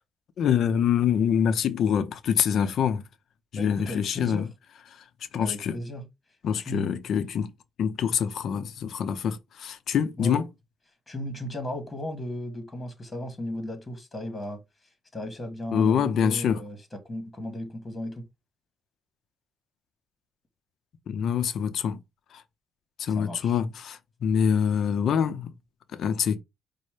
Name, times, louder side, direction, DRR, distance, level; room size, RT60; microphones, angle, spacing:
voice 1, 0.4-3.0 3.5-4.5 4.9-5.0 5.3-5.8 6.4-7.5 7.8-10.5 15.7-16.6 21.1-22.0 22.3-22.4 23.0-25.5 25.9-26.4, left 8 dB, 70° left, 0.6 m, -25 dB
voice 2, 3.6-4.5 5.4-6.0 6.6-6.9 10.2-10.4 11.1-14.6 15.1-18.2 23.1-23.6, left 1 dB, 20° left, 1.6 m, -35 dB
5.2 x 2.1 x 4.9 m
cardioid pair, 90°, 0 cm